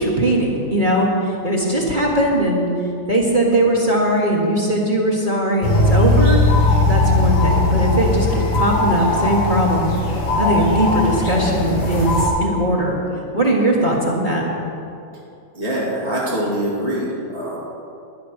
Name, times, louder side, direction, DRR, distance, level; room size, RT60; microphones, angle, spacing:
voice 1, 0.0-2.7 3.1-6.4 6.9-9.9 10.4-13.0 13.3-14.4, right 1 dB, 30° right, -4 dB, 0.9 m, -19 dB
sound 1, 5.6-12.3, left 2 dB, 50° left, 2.6 m, -18 dB
voice 2, 15.5-17.6, right 1 dB, 15° left, -6 dB, 1.7 m, -24 dB
11.5 x 10.0 x 6.5 m, 2.6 s
omnidirectional pair, 3.3 m